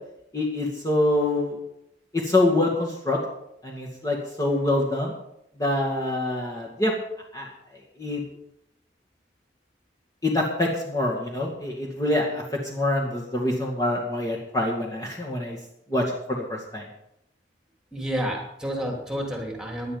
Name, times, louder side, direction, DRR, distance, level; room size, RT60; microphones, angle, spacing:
voice 1, 0.3-1.6 2.1-3.2 3.6-5.1 5.6-6.9 7.3-7.5 8.0-8.2 10.2-15.6 15.9-16.9, left 1 dB, 20° left, -2 dB, 2.2 m, -25 dB
voice 2, 17.9-20.0, equal, 5° right, 1 dB, 2.9 m, -30 dB
17.5 x 11.0 x 5.4 m, 0.81 s
head